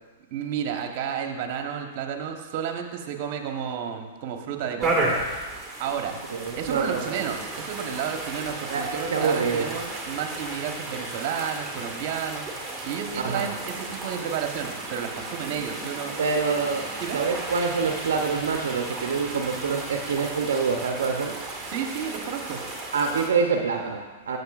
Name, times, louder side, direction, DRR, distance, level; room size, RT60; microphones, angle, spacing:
voice 1, 0.3-5.2 5.8-6.2 6.5-12.5 12.8-16.2 17.0-17.2 21.7-22.6, right 8 dB, 50° right, 4 dB, 1.0 m, -31 dB
sound 1, 4.8-23.3, right 2 dB, 10° right, 1.8 m, -34 dB
voice 2, 6.3-7.3 8.7-9.7 13.2-13.5 16.2-16.9 17.1-21.3 22.9-24.4, right 5 dB, 80° right, 3 dB, 0.7 m, -26 dB
11.5 x 6.6 x 2.5 m, 1.3 s
hypercardioid pair, 120°, 0 cm